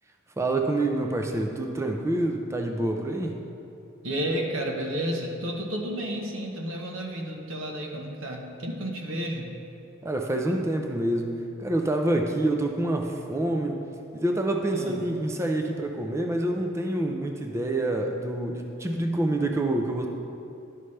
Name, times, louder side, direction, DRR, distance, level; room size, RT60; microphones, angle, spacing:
voice 1, 0.4-3.4 10.0-13.8 14.1-20.1, right 1 dB, 15° right, 2 dB, 0.4 m, -27 dB
voice 2, 4.0-9.5 14.7-15.0, right 1 dB, 90° right, 1 dB, 1.0 m, -31 dB
11.0 x 5.5 x 3.2 m, 2.7 s
head